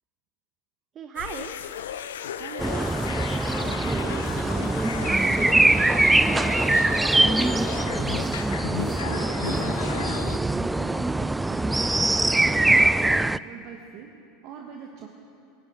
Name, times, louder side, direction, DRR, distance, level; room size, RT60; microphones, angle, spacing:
voice 1, 0.9-1.5 4.0-4.6 5.0-6.5 8.9-9.1, right 7 dB, 35° right, 8 dB, 0.7 m, -38 dB
sound 1, 1.2-10.4, left 9 dB, 75° left, 0.5 m, -35 dB
voice 2, 2.3-2.9 3.6-4.2 8.7-11.8 12.2-14.1 14.4-15.1, right 7 dB, 50° right, 2 dB, 1.3 m, -41 dB
sound 2, 2.6-13.4, right 2 dB, 10° right, 0.3 m, -23 dB
16.0 x 9.8 x 8.8 m, 2.7 s
hypercardioid pair, 80°, 0 cm